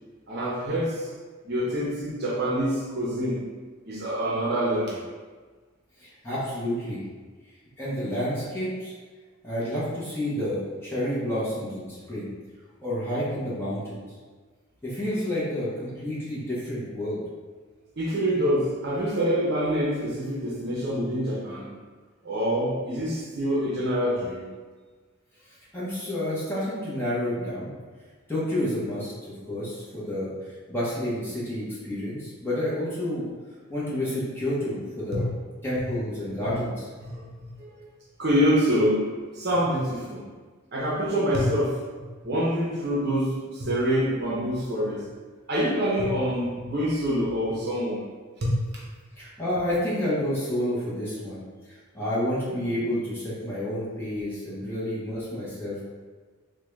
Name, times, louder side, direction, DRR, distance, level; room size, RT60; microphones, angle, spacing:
voice 1, 0.3-1.1 1.4-3.4 3.8-5.0 18.0-21.7 22.2-24.5 35.1-35.3 37.0-37.9 38.2-40.2 40.7-41.8 42.2-45.0 45.5-48.0 48.4-48.6, equal, 50° right, -5 dB, 0.7 m, -26 dB
voice 2, 6.0-7.0 7.8-9.0 9.4-12.3 12.8-14.0 14.8-17.2 25.5-27.7 28.3-29.1 29.5-30.3 30.7-33.3 33.7-35.2 35.6-36.9 49.2-55.8, left 1 dB, 10° left, -9 dB, 0.8 m, -29 dB
3.6 x 2.2 x 3.1 m, 1.4 s
head